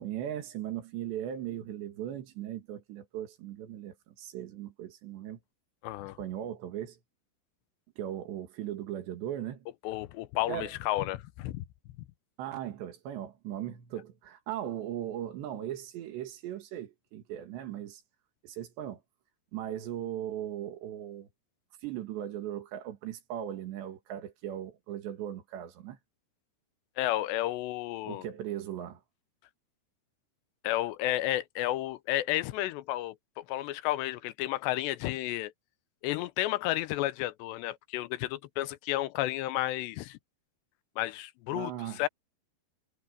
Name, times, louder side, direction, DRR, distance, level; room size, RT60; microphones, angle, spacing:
voice 1, 0.0-5.4 6.2-7.0 8.0-9.7 10.5-10.7 12.4-18.0 18.4-19.0 19.5-21.3 21.8-26.0 28.0-29.0 41.5-42.0, right 11 dB, 85° right, 4.2 m, -38 dB
voice 2, 5.8-6.2 9.8-11.6 27.0-28.3 30.6-35.5 36.0-40.2 41.0-42.1, left 15 dB, 85° left, 3.0 m, -32 dB
omnidirectional pair, 4.9 m